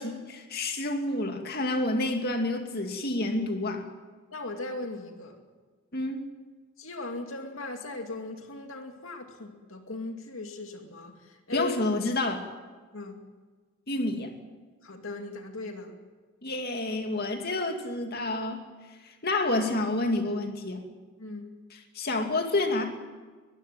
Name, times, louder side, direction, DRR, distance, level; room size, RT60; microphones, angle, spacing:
voice 1, 0.0-3.8 5.9-6.2 11.5-12.5 13.9-14.3 16.4-18.6 19.0-20.8 21.9-22.9, left 2 dB, 45° left, 4 dB, 2.4 m, -29 dB
voice 2, 4.3-5.4 6.8-11.7 12.9-13.2 14.8-15.9 21.2-21.5, left 2 dB, 70° left, 4 dB, 2.4 m, -38 dB
21.0 x 15.0 x 9.4 m, 1.4 s
head